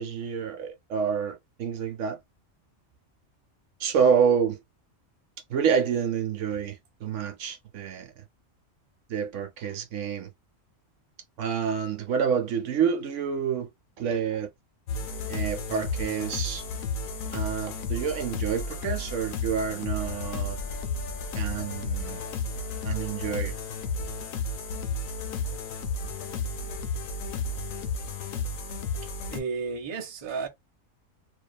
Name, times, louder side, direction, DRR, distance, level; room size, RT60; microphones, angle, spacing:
voice 1, 0.0-2.2 3.8-4.6 5.5-8.1 9.1-10.3 11.4-13.7 14.0-14.5 15.3-16.6 17.3-20.6 21.3-22.2 22.8-23.6, right 7 dB, 70° right, 0.9 m, -28 dB
sound 1, 14.9-29.4, left 3 dB, 90° left, 1.0 m, -32 dB
voice 2, 29.0-30.5, right 5 dB, 35° right, 0.5 m, -33 dB
2.6 x 2.2 x 2.2 m
omnidirectional pair, 1.3 m